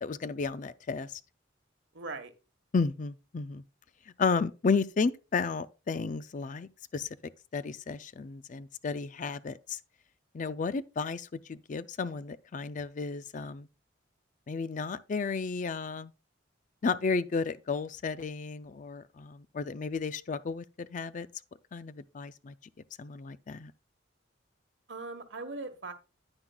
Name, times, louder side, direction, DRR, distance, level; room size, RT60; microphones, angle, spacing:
voice 1, 0.0-1.2 2.7-3.6 4.2-9.8 10.3-13.7 14.5-16.1 16.8-21.3 21.7-22.5 23.0-23.7, left 4 dB, 40° left, 0.4 m, -33 dB
voice 2, 1.9-2.3 24.9-25.9, right 3 dB, 65° right, 1.3 m, -39 dB
9.8 x 9.7 x 2.3 m
head